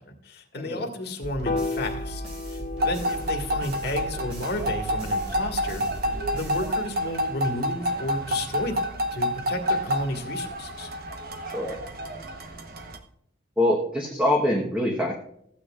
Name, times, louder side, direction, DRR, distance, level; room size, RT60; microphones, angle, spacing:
voice 1, 0.0-2.2 2.5-8.8 9.1-10.9, left 1 dB, 60° left, 3 dB, 1.8 m, -32 dB
voice 2, 0.5-0.8 11.5-11.8 13.6-15.1, left 1 dB, 5° right, 0 dB, 1.1 m, -24 dB
sound 1, 1.2-7.3, right 1 dB, 35° right, 3.1 m, -38 dB
Piano, 1.5-7.8, left 3 dB, 45° left, 1.0 m, -36 dB
sound 2, 2.8-13.0, equal, 55° right, 1.0 m, -29 dB
14.5 x 9.1 x 2.4 m, 0.71 s
head